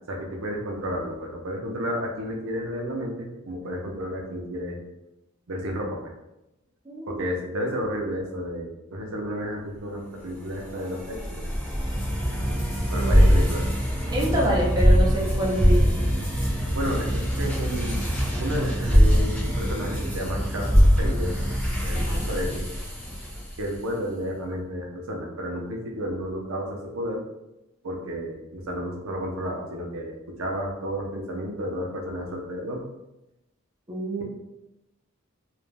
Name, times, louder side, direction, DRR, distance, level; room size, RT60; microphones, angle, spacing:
voice 1, 0.1-4.8 5.5-6.1 7.1-11.5 12.9-13.6 16.7-18.0 18.4-21.3 21.8-22.6 23.6-27.2 27.8-32.8, equal, 75° right, 0 dB, 0.6 m, -32 dB
voice 2, 6.9-7.2 12.9-13.4 14.1-16.1 21.9-22.3 33.9-34.2, equal, 20° right, -3 dB, 0.4 m, -27 dB
sound 1, 10.4-23.7, equal, 5° left, 1.0 m, -23 dB
2.4 x 2.1 x 3.2 m, 0.92 s
head